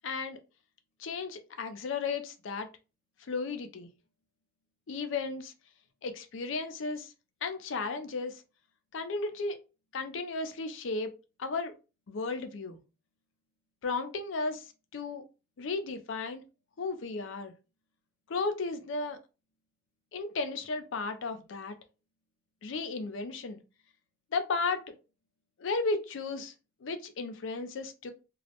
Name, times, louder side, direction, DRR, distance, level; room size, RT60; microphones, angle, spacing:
voice 1, 0.0-0.4 1.0-2.7 3.3-3.9 4.9-5.5 6.0-7.1 7.4-8.4 8.9-9.6 9.9-11.1 11.4-11.7 12.1-12.8 13.8-15.2 15.6-16.4 16.8-17.5 18.3-19.2 20.1-21.8 22.6-23.6 24.3-24.9 25.6-26.5 26.8-28.1, left 3 dB, 85° left, 0.4 m, -34 dB
2.3 x 2.0 x 2.8 m
head